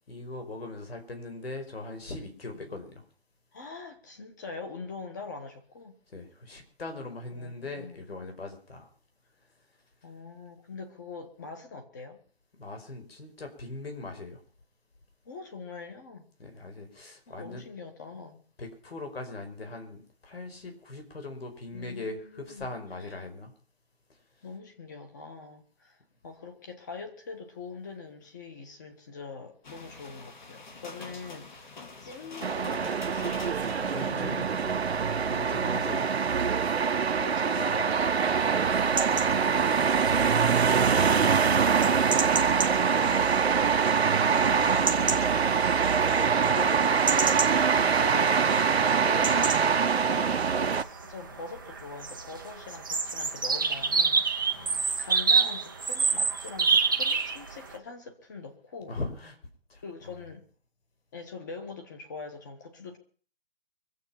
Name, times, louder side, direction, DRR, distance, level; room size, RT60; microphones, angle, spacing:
voice 1, 0.1-3.0 6.1-8.9 12.6-14.4 16.4-17.7 18.6-23.5 33.7-36.1 38.9-40.3 40.6-41.4 44.1-45.5 54.5-55.0 58.9-59.4 59.7-60.2, left 2 dB, 65° left, 5.2 m, -41 dB
voice 2, 3.5-5.9 7.3-8.0 10.0-12.2 15.2-16.3 17.3-18.4 21.7-22.7 23.0-23.3 24.4-26.0 26.2-31.7 32.0-33.4 35.6-36.0 37.1-38.7 41.1-43.4 46.4-54.2 55.0-59.0 59.8-60.4 61.1-63.0, left 4 dB, 15° left, 1.4 m, -43 dB
sound 1, 29.6-35.0, left 3 dB, 45° left, 2.3 m, -44 dB
sound 2, 32.4-50.8, right 6 dB, 70° right, 1.1 m, -24 dB
sound 3, 38.6-57.8, right 4 dB, 20° right, 0.7 m, -31 dB
24.0 x 8.2 x 5.8 m
hypercardioid pair, 175°, 32 cm